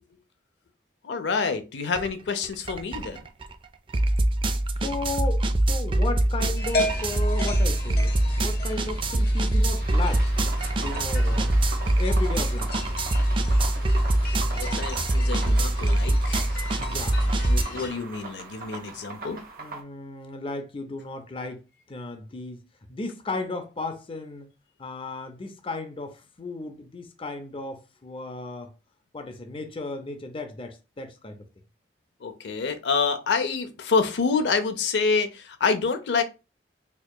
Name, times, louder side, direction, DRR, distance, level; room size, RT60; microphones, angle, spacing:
voice 1, 1.0-3.2 14.6-16.5 17.4-19.4 32.2-36.2, left 5 dB, 80° left, 0.5 m, -27 dB
sound 1, 1.9-2.1 2.4-17.6, right 1 dB, 30° right, 0.3 m, -24 dB
voice 2, 4.8-10.3 10.8-11.5 12.0-12.7 16.8-17.5 19.6-21.6 21.9-22.6 22.9-24.5 24.8-28.7 29.1-31.5, left 2 dB, 30° left, 0.5 m, -35 dB
sound 2, 6.5-17.9, left 2 dB, 60° left, 0.9 m, -36 dB
sound 3, 9.8-19.8, right 3 dB, 60° right, 1.1 m, -40 dB
4.4 x 2.8 x 2.2 m
head